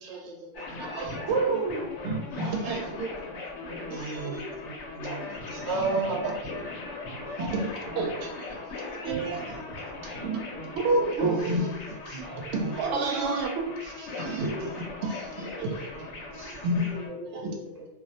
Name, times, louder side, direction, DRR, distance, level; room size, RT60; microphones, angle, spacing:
voice 1, 0.1-1.1 2.9-3.1 5.5-5.6 7.8-8.0 10.2-10.6 12.8-13.2 16.9-17.9, right 2 dB, 40° right, -4 dB, 0.8 m, -42 dB
sound 1, 0.5-17.1, left 2 dB, 90° left, 0.9 m, -39 dB
voice 2, 0.8-2.9 3.9-4.4 5.5-6.3 7.4-8.3 9.0-9.6 10.0-10.4 10.8-11.8 12.1-14.7 15.0-15.8 16.3-16.9 17.3-17.5, right 2 dB, 85° right, 1 dB, 0.9 m, -29 dB
voice 3, 3.7-5.8 6.2-6.4 7.2-7.3 8.5-8.6 12.1-12.6 14.2-14.4, right 2 dB, 65° left, -1 dB, 0.8 m, -43 dB
2.3 x 2.0 x 2.7 m, 0.98 s
omnidirectional pair, 1.2 m